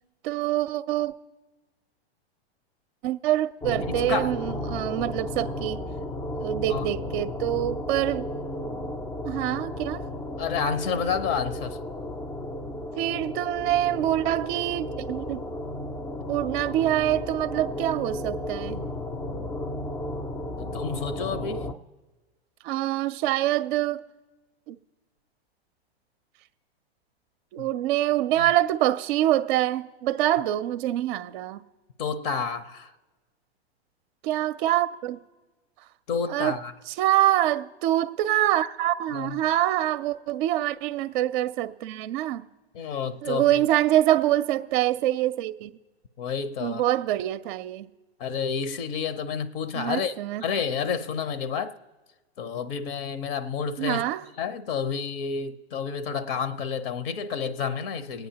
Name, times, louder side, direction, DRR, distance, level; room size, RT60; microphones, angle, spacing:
voice 1, 0.2-1.1 3.0-5.8 6.4-8.2 9.2-10.0 13.0-15.4 16.3-18.8 22.6-24.0 24.7-24.8 27.5-31.6 34.2-35.2 36.3-36.6 36.9-42.4 43.2-45.7 46.6-47.9 49.8-50.4 53.8-54.2, right 13 dB, 50° right, 0.5 m, -25 dB
sound 1, 3.6-21.7, left 1 dB, 10° left, 0.3 m, -34 dB
voice 2, 3.8-4.3 6.7-6.9 10.4-11.8 20.6-21.7 27.6-27.7 28.4-28.5 32.0-32.9 36.1-36.7 39.1-39.4 42.7-43.6 46.2-46.8 48.2-51.8 52.4-54.0 54.4-58.3, left 6 dB, 60° left, 0.7 m, -30 dB
27.0 x 9.1 x 2.8 m
hypercardioid pair, 115°, 32 cm